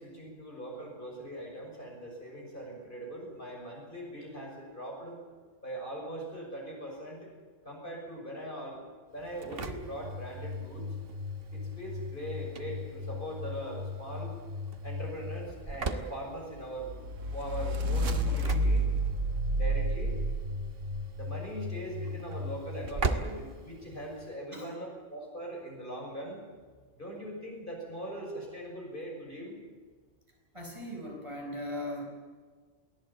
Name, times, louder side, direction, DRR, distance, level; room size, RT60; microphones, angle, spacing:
voice 1, 0.0-5.2 5.6-7.3 7.6-10.9 11.5-14.3 14.8-16.9 17.3-18.8 19.6-20.2 21.1-26.4 26.9-29.5, equal, 45° left, -1 dB, 6.6 m, -41 dB
Engine / Slam, 9.2-24.3, equal, 50° right, 1.5 m, -38 dB
sound 1, 16.8-21.0, right 1 dB, 85° right, 1.7 m, -29 dB
voice 2, 30.5-32.0, left 1 dB, 25° right, 0 dB, 5.0 m, -38 dB
23.0 x 17.0 x 8.7 m, 1.5 s
omnidirectional pair, 1.3 m